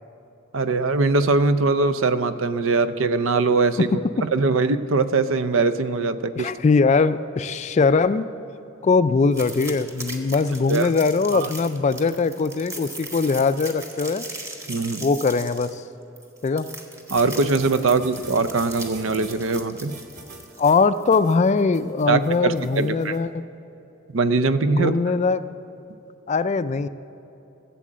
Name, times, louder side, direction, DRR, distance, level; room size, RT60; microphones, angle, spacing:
voice 1, 0.5-6.5 10.7-10.9 11.3-11.5 14.7-15.1 17.1-19.9 22.1-23.2 24.1-25.0, right 3 dB, 75° right, 12 dB, 0.6 m, -22 dB
voice 2, 6.4-8.3 8.8-14.3 15.0-15.8 16.4-16.7 20.6-23.3 24.7-25.4 26.3-26.9, left 4 dB, 35° left, 13 dB, 0.3 m, -21 dB
sound 1, 9.3-21.0, right 1 dB, 15° right, 1.1 m, -39 dB
sound 2, 17.1-23.2, right 3 dB, 40° right, 1.6 m, -43 dB
13.5 x 7.7 x 7.4 m, 2.9 s
head